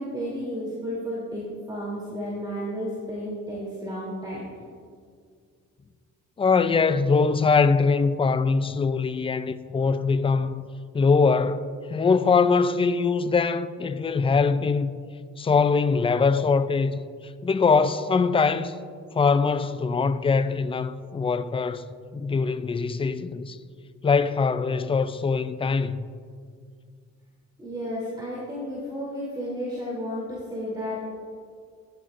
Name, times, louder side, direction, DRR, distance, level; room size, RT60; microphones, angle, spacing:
voice 1, 0.0-4.5 27.6-31.1, equal, 15° right, 3.1 m, -32 dB
voice 2, 6.4-10.7 10.9-14.9 15.4-17.1 17.4-18.7 19.1-23.6 24.0-26.1, left 4 dB, 20° left, 0.4 m, -22 dB
14.5 x 10.5 x 2.5 m
cardioid pair, 90°, 30 cm